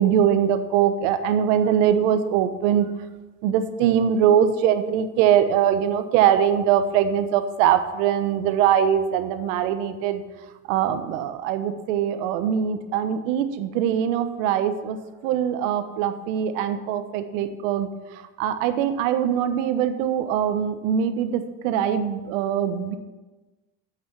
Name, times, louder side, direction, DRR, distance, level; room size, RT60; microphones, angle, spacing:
voice 1, 0.0-2.9 3.4-10.2 10.7-15.0 15.2-17.9 18.4-23.0, right 9 dB, 75° right, 9 dB, 1.1 m, -22 dB
9.6 x 8.1 x 6.2 m, 1.2 s
cardioid pair, 150°, 38 cm